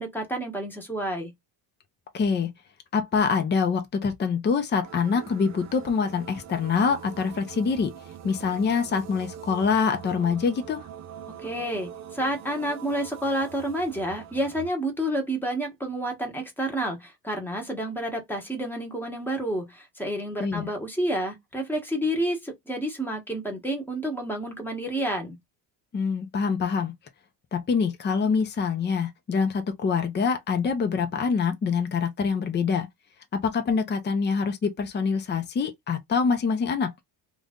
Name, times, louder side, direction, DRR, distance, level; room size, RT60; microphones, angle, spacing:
voice 1, 0.0-1.3 11.4-25.4, right 1 dB, 5° left, 1.1 m, -29 dB
voice 2, 2.1-2.5 2.9-7.9 8.2-10.8 20.4-20.7 25.9-26.9 27.5-32.9 33.4-36.9, left 5 dB, 25° left, 0.7 m, -25 dB
sound 1, 4.8-14.7, right 9 dB, 35° right, 0.6 m, -43 dB
3.0 x 2.6 x 3.6 m
cardioid pair, 140°, 45 cm